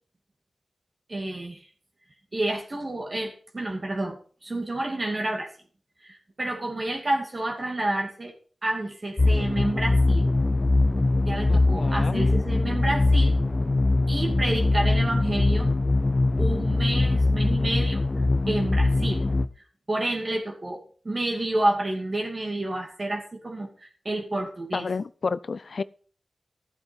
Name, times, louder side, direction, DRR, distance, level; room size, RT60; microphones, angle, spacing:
voice 1, 1.1-1.7 2.3-5.5 6.0-8.3 8.6-10.3 11.3-13.4 14.1-15.7 16.4-18.0 18.5-19.2 19.9-24.9, right 1 dB, 40° right, 2.5 m, -29 dB
sound 1, 9.2-19.5, left 2 dB, 40° left, 0.8 m, -22 dB
voice 2, 11.5-12.3 24.7-25.8, left 4 dB, 70° left, 0.4 m, -30 dB
12.5 x 8.0 x 5.4 m
cardioid pair, 60°, 0 cm